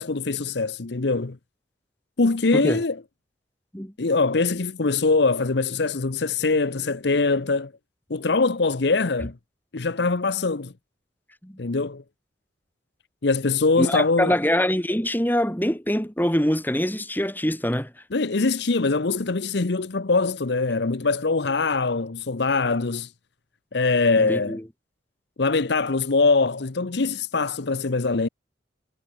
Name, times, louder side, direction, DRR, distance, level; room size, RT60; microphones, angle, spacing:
voice 1, 0.0-1.4 2.2-3.0 4.0-7.7 8.1-9.3 9.7-10.7 11.6-12.0 13.2-14.3 18.1-23.1 23.7-24.6 25.4-28.3, left 3 dB, 60° left, 0.8 m, -23 dB
voice 2, 13.8-17.9 24.2-24.6, equal, 10° left, 4.7 m, -24 dB
head